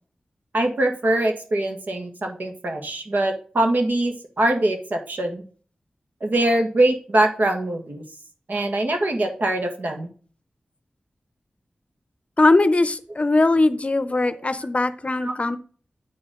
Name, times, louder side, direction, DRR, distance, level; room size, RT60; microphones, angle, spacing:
voice 1, 0.5-5.4 6.2-8.0 8.5-10.1 14.3-14.4 15.2-15.3, right 1 dB, 65° right, 4 dB, 1.8 m, -23 dB
voice 2, 12.4-15.6, left 2 dB, 40° left, 13 dB, 0.7 m, -20 dB
8.4 x 4.9 x 3.7 m, 0.41 s
cardioid pair, 45°, 3 cm